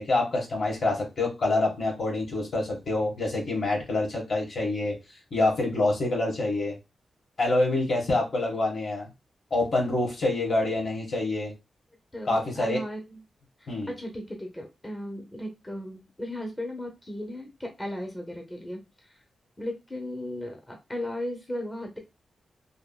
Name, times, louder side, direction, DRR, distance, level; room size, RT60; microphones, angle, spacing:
voice 1, 0.0-4.9 5.3-6.8 7.4-9.1 9.5-11.5 12.2-12.8 13.7-13.9, left 2 dB, 60° left, 0 dB, 1.5 m, -26 dB
voice 2, 12.1-13.2 13.6-19.2 19.6-22.0, left 1 dB, 15° left, 2 dB, 0.8 m, -36 dB
3.4 x 2.7 x 2.3 m, 0.25 s
cardioid pair, 70°, 0 cm